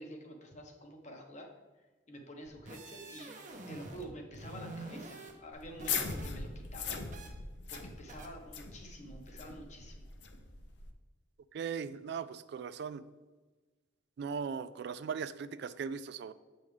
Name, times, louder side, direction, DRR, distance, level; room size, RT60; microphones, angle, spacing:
voice 1, 0.0-1.5 1.8-3.4 3.7-7.1 7.7-10.1, equal, 40° left, 3 dB, 1.0 m, -49 dB
sound 1, 2.4-4.1 4.3-6.3 6.6-7.3 7.7-7.8 8.1-8.3, right 2 dB, 45° right, 0.9 m, -47 dB
sound 2, 5.5-10.9, left 5 dB, 70° left, 0.7 m, -40 dB
voice 2, 11.5-13.0 14.2-16.3, right 6 dB, 65° right, 14 dB, 0.3 m, -38 dB
7.7 x 5.4 x 3.2 m, 1.3 s
head